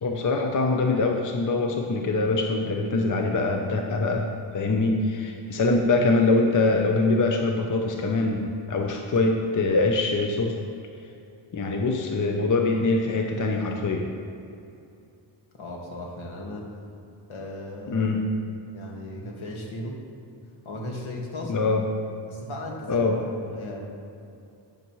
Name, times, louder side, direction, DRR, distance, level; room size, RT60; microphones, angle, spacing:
voice 1, 0.0-4.3 4.5-10.6 11.5-14.1 17.9-18.2 21.5-21.8 22.9-23.2, left 3 dB, 40° left, 2 dB, 0.7 m, -23 dB
voice 2, 15.5-16.7 17.3-18.1 18.7-20.0 20.6-21.6 22.3-23.1 23.4-23.9, left 1 dB, 85° left, -1 dB, 1.8 m, -36 dB
11.5 x 8.8 x 3.1 m, 2.6 s
wide cardioid pair, 170°, 47 cm